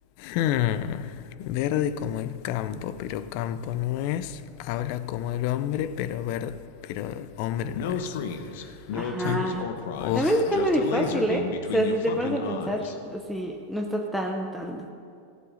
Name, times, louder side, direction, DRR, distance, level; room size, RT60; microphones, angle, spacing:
voice 1, 0.2-8.2 9.2-9.4 10.0-10.3, left 11 dB, 55° left, 0.6 m, -29 dB
Speech, 7.7-12.9, left 6 dB, 70° left, 1.0 m, -32 dB
voice 2, 8.9-9.6 10.1-14.9, right 1 dB, ahead, 0.8 m, -27 dB
15.0 x 7.7 x 6.4 m
supercardioid pair, 125°, 0 cm